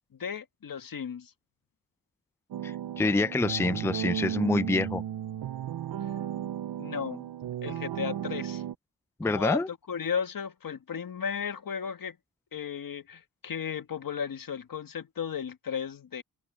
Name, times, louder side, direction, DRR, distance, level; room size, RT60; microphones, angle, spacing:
voice 1, 0.2-1.3 6.8-7.3 7.6-8.6 9.2-12.2 12.5-16.2, left 7 dB, 70° left, 1.7 m, -35 dB
sound 1, 2.5-8.7, right 10 dB, 85° right, 0.6 m, -34 dB
voice 2, 2.6-5.0 9.2-9.7, left 3 dB, 10° left, 0.5 m, -27 dB
open air
wide cardioid pair, 80°, 35 cm